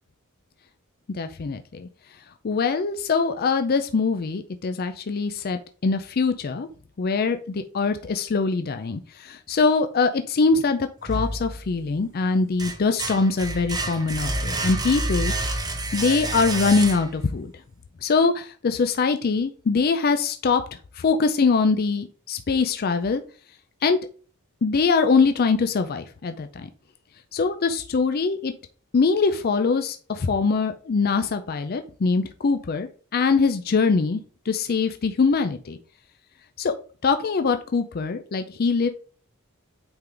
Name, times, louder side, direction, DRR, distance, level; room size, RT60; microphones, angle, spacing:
voice 1, 1.1-1.9 2.4-6.7 7.0-15.5 15.9-17.5 18.0-20.6 21.0-23.2 23.8-24.0 24.6-26.7 27.3-28.5 28.9-34.2 34.5-35.8 36.6-36.7 37.0-38.9, left 4 dB, 45° left, 8 dB, 0.4 m, -23 dB
sound 1, 11.1-11.9 12.3-17.4, right 2 dB, 20° right, 0.8 m, -29 dB
8.7 x 3.8 x 3.3 m, 0.41 s
head